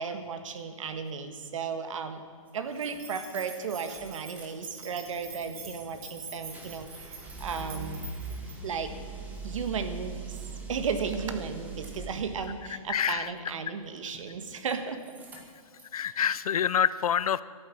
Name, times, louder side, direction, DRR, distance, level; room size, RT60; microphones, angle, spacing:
voice 1, 0.0-2.2 2.5-8.1 8.6-8.9 9.4-10.4 10.7-15.0, right 6 dB, 65° right, 8 dB, 1.6 m, -34 dB
sound 1, 2.5-2.6 2.9-4.5 4.8-12.5 14.0-14.7 15.0-16.0, right 3 dB, 10° right, 1.5 m, -42 dB
sound 2, 2.8-8.5, right 4 dB, 80° right, 4.6 m, -45 dB
voice 2, 12.9-13.3 15.9-17.4, left 8 dB, 80° left, 18 dB, 0.6 m, -26 dB
12.5 x 9.2 x 8.5 m, 2.2 s
hypercardioid pair, 165°, 18 cm